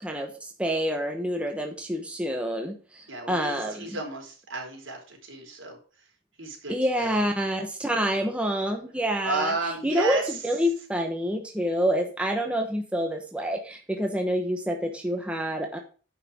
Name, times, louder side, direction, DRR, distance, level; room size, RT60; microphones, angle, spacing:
voice 1, 0.0-4.0 6.7-15.8, equal, 5° right, 3 dB, 1.1 m, -28 dB
voice 2, 3.1-5.8 6.4-7.2 9.2-10.2, right 3 dB, 75° right, 0 dB, 4.2 m, -33 dB
10.0 x 5.8 x 6.1 m, 0.37 s
head